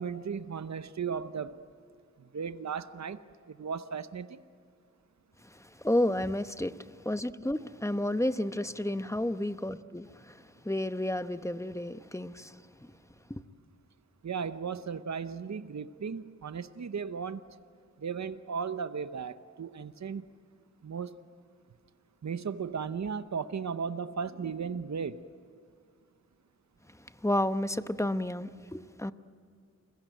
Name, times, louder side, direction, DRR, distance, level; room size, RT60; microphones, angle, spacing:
voice 1, 0.0-1.6 2.3-3.2 3.5-4.4 14.2-17.4 18.0-20.2 20.8-21.2 22.2-25.2, right 6 dB, 70° right, 0.8 m, -36 dB
voice 2, 5.6-6.8 7.0-12.6 13.3-13.4 27.2-29.1, left 1 dB, 10° left, 0.9 m, -31 dB
29.5 x 22.0 x 9.2 m
wide cardioid pair, 55°, 29 cm